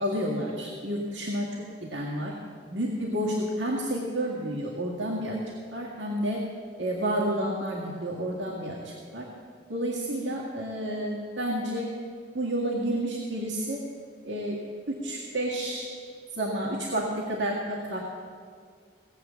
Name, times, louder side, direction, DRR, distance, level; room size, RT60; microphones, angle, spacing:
voice 1, 0.0-1.5 1.9-2.3 2.7-5.4 5.7-6.4 6.8-9.3 9.7-11.9 12.3-13.8 14.2-14.6 14.9-15.9 16.3-18.0, right 1 dB, 80° right, -4 dB, 1.9 m, -30 dB
17.5 x 7.7 x 7.1 m, 2.1 s
head